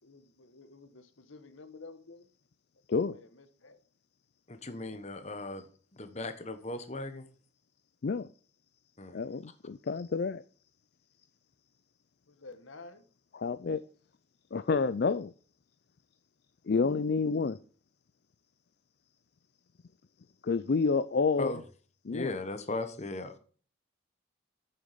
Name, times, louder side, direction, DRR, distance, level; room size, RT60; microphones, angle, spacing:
voice 1, 0.0-2.3 2.9-3.8 4.8-5.0 12.3-13.0, left 3 dB, 80° left, 1.2 m, -51 dB
voice 2, 4.5-7.2 9.0-9.2 21.3-21.6 22.1-23.4, left 2 dB, 35° left, 1.1 m, -37 dB
voice 3, 9.1-10.4 13.3-13.8 14.5-15.3 16.7-17.6 20.4-21.5 22.1-22.3, left 4 dB, 50° left, 0.4 m, -29 dB
9.1 x 7.0 x 5.0 m
head